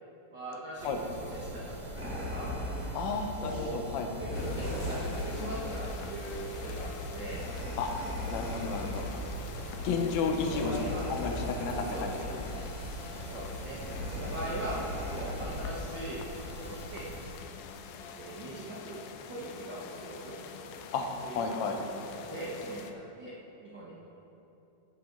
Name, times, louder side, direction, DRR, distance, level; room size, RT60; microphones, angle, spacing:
voice 1, 0.3-2.0 2.3-2.6 3.4-3.8 4.2-7.4 10.5-11.1 11.7-12.0 13.2-13.8 14.0-14.8 15.1-16.2 16.5-17.0 18.1-19.0 19.3-20.3 21.2-23.3 23.6-24.0, right 1 dB, 75° right, -6 dB, 1.0 m, -41 dB
sound 1, 0.8-17.3, equal, 40° right, 2.1 m, -43 dB
sound 2, 2.0-15.8, left 1 dB, 5° right, 1.2 m, -39 dB
voice 2, 2.9-4.1 7.8-7.9 8.3-9.0 9.8-10.7 11.1-12.4 20.9-21.1 21.3-21.8, left 5 dB, 70° left, 3 dB, 1.8 m, -32 dB
sound 3, 4.3-22.9, left 6 dB, 85° left, 2.5 m, -46 dB
15.5 x 8.4 x 3.9 m, 3.0 s
omnidirectional pair, 4.1 m